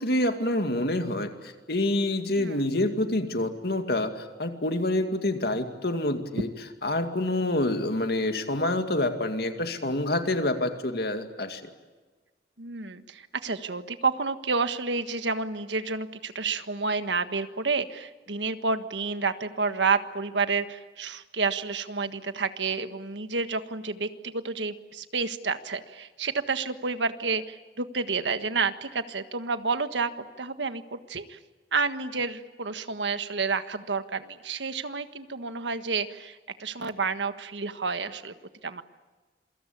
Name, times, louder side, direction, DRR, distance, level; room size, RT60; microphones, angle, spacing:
voice 1, 0.0-6.5 6.8-11.6, left 1 dB, 60° left, 6 dB, 2.3 m, -27 dB
voice 2, 12.6-30.1 30.4-31.4 31.7-38.3 38.6-38.8, right 4 dB, 85° right, 10 dB, 1.5 m, -30 dB
27.5 x 24.0 x 8.6 m, 1.3 s
head